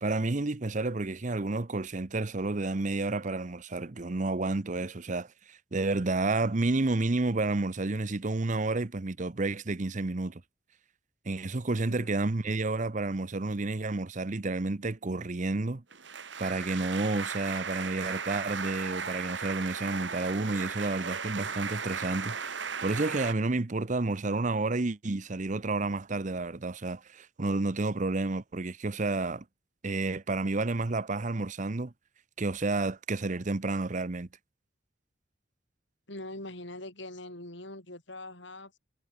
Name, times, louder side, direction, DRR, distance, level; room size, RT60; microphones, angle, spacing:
voice 1, 0.0-10.4 11.3-15.8 16.4-29.4 29.8-31.9 32.4-34.3, right 2 dB, 40° right, 0.8 m, -30 dB
sound 1, 15.9-23.3, right 6 dB, 65° right, 3.1 m, -36 dB
voice 2, 36.1-38.8, left 1 dB, 65° left, 7.9 m, -43 dB
head